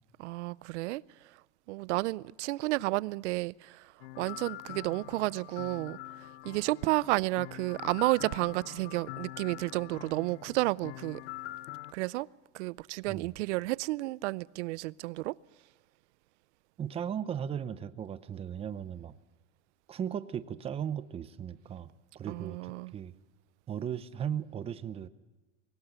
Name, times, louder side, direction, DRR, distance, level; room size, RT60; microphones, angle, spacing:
voice 1, 0.2-1.0 1.7-6.0 6.4-11.2 11.9-12.3 12.5-15.3 22.3-22.9, right 20 dB, 80° right, 0.6 m, -31 dB
sound 1, 4.0-11.9, left 17 dB, 70° left, 0.6 m, -44 dB
voice 2, 16.8-19.2 19.9-23.1 23.7-25.1, right 8 dB, 15° right, 0.6 m, -37 dB
22.5 x 18.0 x 8.0 m
supercardioid pair, 155°, 35 cm